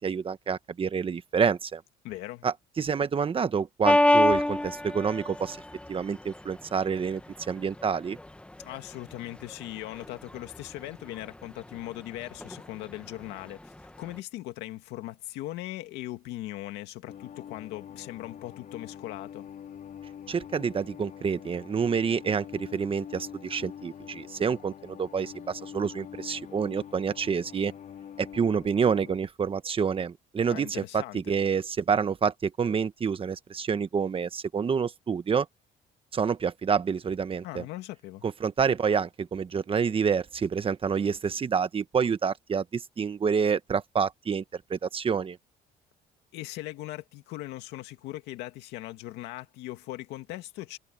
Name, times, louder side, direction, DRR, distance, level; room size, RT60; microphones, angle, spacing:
voice 1, 0.0-1.8 2.4-5.6 5.9-7.2 7.5-8.2 20.3-27.7 28.2-35.5 36.1-37.6 38.2-45.4, right 6 dB, 35° right, 1.2 m, -28 dB
voice 2, 2.0-2.5 8.6-19.5 30.5-31.3 37.4-38.2 46.3-50.8, left 16 dB, 90° left, 2.1 m, -39 dB
sound 1, 3.8-14.2, left 1 dB, 5° left, 1.5 m, -28 dB
sound 2, 17.1-29.2, left 9 dB, 50° left, 4.8 m, -45 dB
cardioid pair, 110°, 17 cm